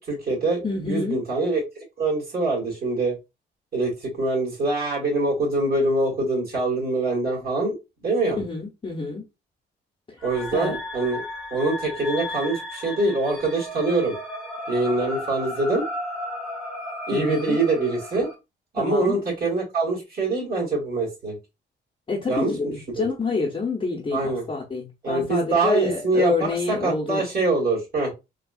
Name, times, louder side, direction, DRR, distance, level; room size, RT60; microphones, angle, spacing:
voice 1, 0.0-0.6 0.9-1.6 2.0-3.1 3.7-7.7 8.0-8.4 10.2-11.2 11.5-14.1 14.7-15.9 17.1-18.3 18.7-21.4 22.3-23.1 24.1-24.5 25.0-28.1, right 2 dB, 50° right, 1.7 m, -24 dB
voice 2, 0.6-1.2 8.4-9.3 10.5-10.8 17.1-17.6 18.8-19.2 22.1-27.2, left 3 dB, 25° left, 0.7 m, -27 dB
sound 1, 10.2-18.3, left 1 dB, ahead, 0.9 m, -34 dB
3.4 x 2.3 x 2.3 m
cardioid pair, 90°, 20 cm